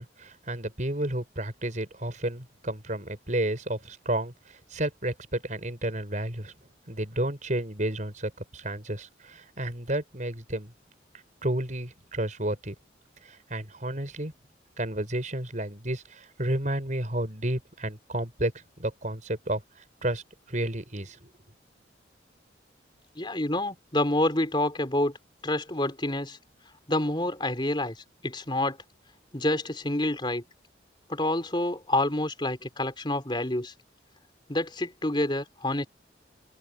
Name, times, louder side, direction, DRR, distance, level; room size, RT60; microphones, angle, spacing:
voice 1, 0.0-6.5 6.9-10.7 11.4-12.8 13.2-14.3 14.8-19.6 20.0-20.2 20.5-21.3, right 1 dB, 40° right, 5.3 m, -31 dB
voice 2, 23.2-25.1 25.4-26.4 26.9-28.0 28.2-28.8 29.3-30.4 31.1-33.7 34.5-35.9, left 1 dB, 25° left, 4.1 m, -28 dB
open air
head